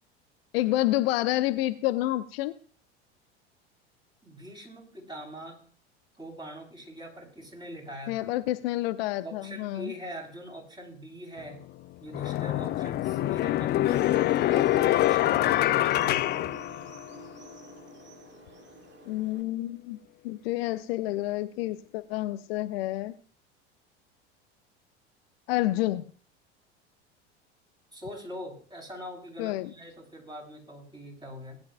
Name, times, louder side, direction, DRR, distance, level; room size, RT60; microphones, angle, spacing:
voice 1, 0.5-2.6 8.1-9.9 19.1-20.0 20.2-23.2 25.5-26.0 29.4-29.7, left 16 dB, 60° left, 10 dB, 0.8 m, -29 dB
voice 2, 4.2-5.6 6.2-8.4 9.2-11.6 12.0-14.0 14.4-16.3 27.9-31.6, equal, 10° right, 1 dB, 4.2 m, -43 dB
sound 1, 11.4-11.5 12.1-17.3, left 14 dB, 30° left, 0.5 m, -25 dB
sound 2, 13.9-19.4, right 7 dB, 30° right, 2.0 m, -50 dB
19.5 x 9.9 x 2.4 m, 0.43 s
figure-of-eight pair, 80°, 34 cm